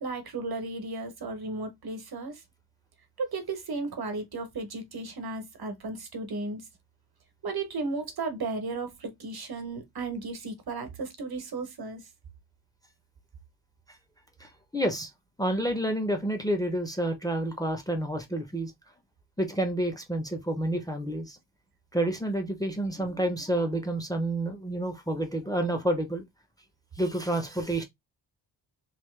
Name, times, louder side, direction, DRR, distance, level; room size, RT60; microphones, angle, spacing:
voice 1, 0.0-2.4 3.2-6.6 7.4-12.0, right 3 dB, 55° right, 1.2 m, -34 dB
voice 2, 14.4-15.1 15.4-18.7 19.4-21.4 21.9-26.2 27.0-27.8, right 1 dB, 10° left, 0.8 m, -29 dB
3.2 x 2.8 x 3.2 m
wide cardioid pair, 105°, 43 cm